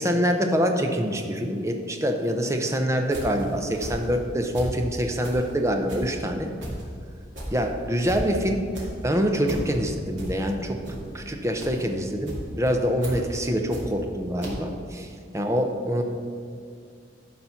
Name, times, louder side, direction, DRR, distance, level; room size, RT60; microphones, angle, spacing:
voice 1, 0.0-6.5 7.5-8.6 9.0-16.0, equal, 15° right, 4 dB, 0.6 m, -25 dB
sound 1, 3.1-4.8 5.2-14.2 14.4-14.5, equal, 90° right, 2.4 m, -36 dB
11.5 x 4.2 x 5.8 m, 2.2 s
head